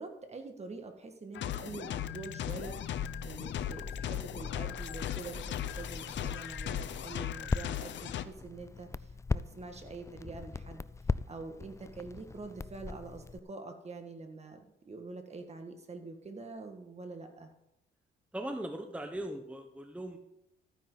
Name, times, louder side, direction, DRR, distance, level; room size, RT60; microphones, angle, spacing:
voice 1, 0.0-2.8 3.2-10.8 11.3-17.5, right 3 dB, 35° right, 5 dB, 2.0 m, -45 dB
sound 1, 1.3-8.2, left 11 dB, 65° left, 0.7 m, -38 dB
Crackle, 2.5-13.4, left 4 dB, 15° left, 0.3 m, -40 dB
voice 2, 18.3-20.2, right 1 dB, 5° right, 5 dB, 1.1 m, -39 dB
14.0 x 9.7 x 4.1 m, 0.85 s
cardioid pair, 90°, 20 cm